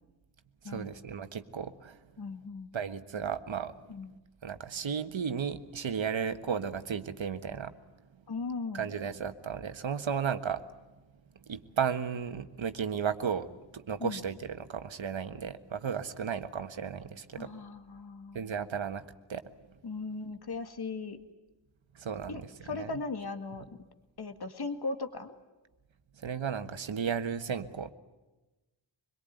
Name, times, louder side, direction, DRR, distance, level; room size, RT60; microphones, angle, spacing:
voice 1, 0.6-2.0 2.7-3.7 4.4-7.7 8.7-10.6 11.5-17.5 18.3-19.4 21.9-22.9 26.2-27.9, right 7 dB, 90° right, 8 dB, 1.5 m, -34 dB
voice 2, 2.2-2.7 3.9-4.1 8.3-8.9 14.0-14.2 17.4-18.4 19.8-21.2 22.3-23.7 24.2-25.3, left 3 dB, 55° left, 7 dB, 1.9 m, -38 dB
25.0 x 22.0 x 9.2 m, 1.1 s
wide cardioid pair, 115°, 45 cm